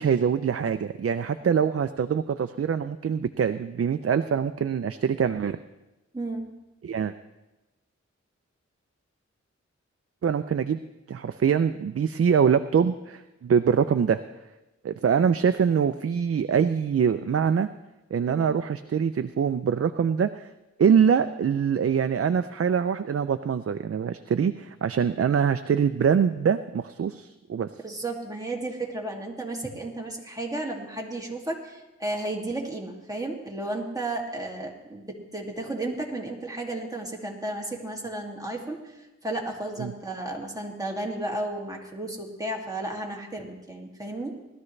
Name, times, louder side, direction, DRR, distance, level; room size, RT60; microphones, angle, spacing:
voice 1, 0.0-5.6 6.8-7.1 10.2-10.8 11.1-14.2 14.8-17.7 18.1-20.5 20.8-27.7 39.8-39.9, right 7 dB, 50° right, 10 dB, 0.5 m, -24 dB
voice 2, 6.1-6.5 18.3-18.6 27.8-44.3, right 2 dB, 10° right, -1 dB, 2.4 m, -33 dB
19.0 x 13.0 x 3.2 m, 1.0 s
wide cardioid pair, 70°, 29 cm